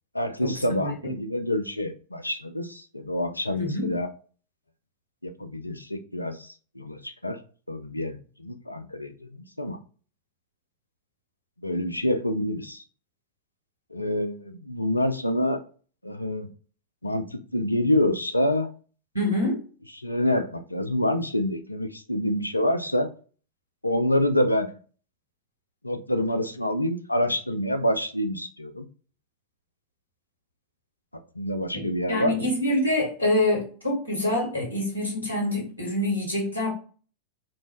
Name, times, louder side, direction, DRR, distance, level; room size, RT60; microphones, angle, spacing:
voice 1, 0.1-4.1 5.2-6.5 6.8-7.4 7.7-9.8 11.6-12.8 13.9-15.6 16.0-16.5 17.0-18.7 20.0-23.1 23.8-24.7 25.8-28.9 31.4-32.4, left 1 dB, 85° left, 7 dB, 0.3 m, -27 dB
voice 2, 0.8-1.1 3.5-3.9 19.1-19.6 31.7-36.7, left 1 dB, 90° right, -2 dB, 1.1 m, -26 dB
2.5 x 2.0 x 3.3 m, 0.39 s
figure-of-eight pair, 90°, 0 cm